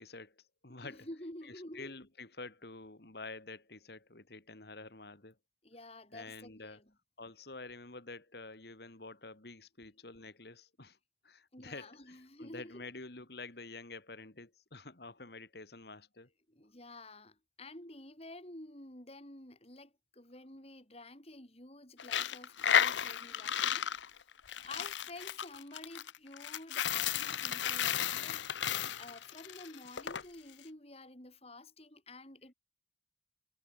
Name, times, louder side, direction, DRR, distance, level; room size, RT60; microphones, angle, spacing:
voice 1, 0.0-5.4 6.1-6.8 7.2-11.0 11.2-16.3, left 3 dB, 60° left, 2.0 m, -49 dB
voice 2, 0.7-2.0 5.6-6.9 11.5-12.8 16.5-24.2 24.6-32.5, left 1 dB, 35° left, 4.3 m, -50 dB
Coin (dropping), 22.0-30.2, left 9 dB, 80° left, 0.9 m, -33 dB
head